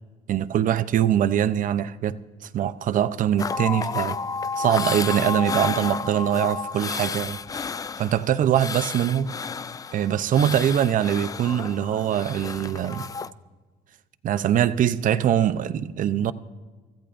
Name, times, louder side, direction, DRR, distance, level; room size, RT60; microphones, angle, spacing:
voice 1, 0.3-2.2 2.5-4.2 4.6-7.7 8.0-9.3 9.9-13.1 14.2-16.3, right 10 dB, 50° right, 0.6 m, -23 dB
sound 1, 3.4-13.3, left 5 dB, 20° left, 0.3 m, -31 dB
24.0 x 15.0 x 2.6 m
cardioid pair, 110°, 17 cm